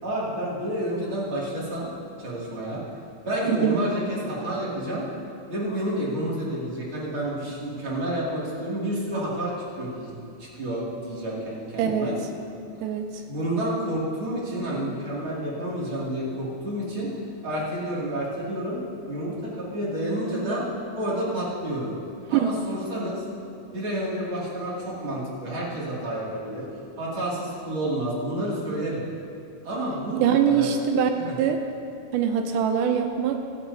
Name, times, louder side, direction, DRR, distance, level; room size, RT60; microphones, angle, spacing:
voice 1, 0.0-1.9 2.2-2.8 3.2-5.0 5.5-10.1 10.4-12.2 13.3-17.1 17.4-18.8 19.1-20.6 20.9-21.9 22.3-23.2 23.7-26.6 27.0-29.0 29.6-30.7 31.2-31.3, right 1 dB, 40° right, -7 dB, 3.0 m, -29 dB
voice 2, 3.5-3.8 11.8-12.1 12.8-13.2 22.3-22.5 30.2-31.1 31.4-31.6 32.1-33.4, right 8 dB, 80° right, 6 dB, 2.0 m, -23 dB
26.0 x 8.8 x 2.7 m, 2.5 s
omnidirectional pair, 4.0 m